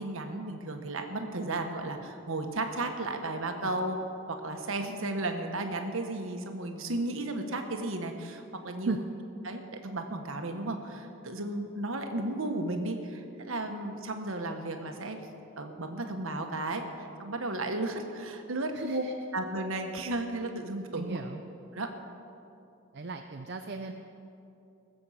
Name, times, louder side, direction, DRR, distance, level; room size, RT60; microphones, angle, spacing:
voice 1, 0.0-4.0 4.3-9.0 9.4-15.2 15.6-19.0 19.3-21.2 21.7-21.9, right 2 dB, 80° right, 5 dB, 1.3 m, -34 dB
voice 2, 18.8-19.1 21.0-21.4 22.9-23.9, right 3 dB, 55° right, 5 dB, 0.6 m, -35 dB
20.0 x 7.8 x 5.8 m, 2.8 s
head